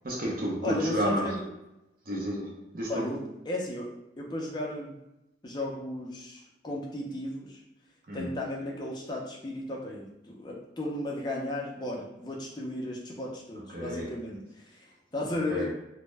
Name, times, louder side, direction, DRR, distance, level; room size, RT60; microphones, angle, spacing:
voice 1, 0.0-1.4 2.1-3.2 8.1-8.4 13.7-14.1 15.5-15.7, equal, 50° right, 0.6 m, -31 dB
voice 2, 0.6-1.4 2.9-3.2 3.5-3.9 4.2-5.0 5.4-7.6 8.1-14.9 15.1-15.7, left 1 dB, 20° left, 0.4 m, -35 dB
2.1 x 2.0 x 3.2 m
head